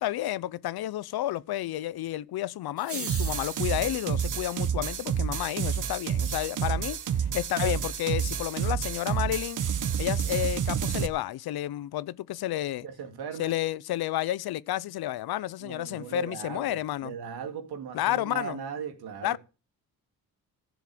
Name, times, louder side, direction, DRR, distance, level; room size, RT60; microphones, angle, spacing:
voice 1, 0.0-9.6 10.0-12.9 13.4-17.1 17.9-18.6 19.2-19.4, left 14 dB, 75° left, 0.7 m, -31 dB
sound 1, 2.8-4.1, right 5 dB, 35° right, 1.9 m, -39 dB
sound 2, 3.1-11.1, right 8 dB, 55° right, 1.1 m, -29 dB
voice 2, 12.8-13.5 15.6-19.4, right 7 dB, 85° right, 2.3 m, -38 dB
14.0 x 7.3 x 7.4 m
cardioid pair, 95°, 37 cm